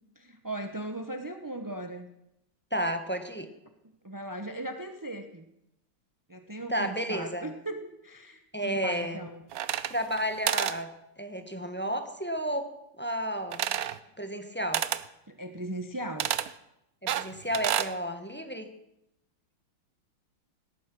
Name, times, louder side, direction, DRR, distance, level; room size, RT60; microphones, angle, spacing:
voice 1, 0.2-2.1 4.0-5.5 6.3-9.4 15.3-16.3, right 1 dB, 20° right, 7 dB, 0.5 m, -38 dB
voice 2, 2.7-3.5 6.7-7.5 8.5-9.3 9.9-10.9 11.2-12.7 13.0-13.6 14.2-14.8 17.0-18.7, equal, 5° left, 7 dB, 1.0 m, -32 dB
sound 1, 9.5-10.2 10.5-10.8 13.5-14.0 14.7-15.1 16.2-16.5 17.1-17.9, right 11 dB, 65° right, 1.0 m, -29 dB
18.5 x 12.5 x 6.2 m, 0.84 s
omnidirectional pair, 2.2 m